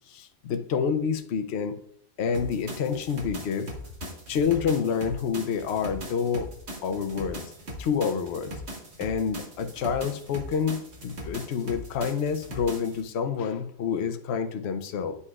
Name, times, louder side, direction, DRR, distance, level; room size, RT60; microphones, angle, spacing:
voice 1, 0.1-1.7 2.2-3.7 4.3-6.5 6.8-7.4 7.8-8.5 9.0-15.2, left 6 dB, 65° left, 8 dB, 0.9 m, -28 dB
sound 1, 2.3-13.0, equal, 65° right, 1.7 m, -40 dB
9.4 x 5.5 x 2.3 m, 0.67 s
omnidirectional pair, 1.2 m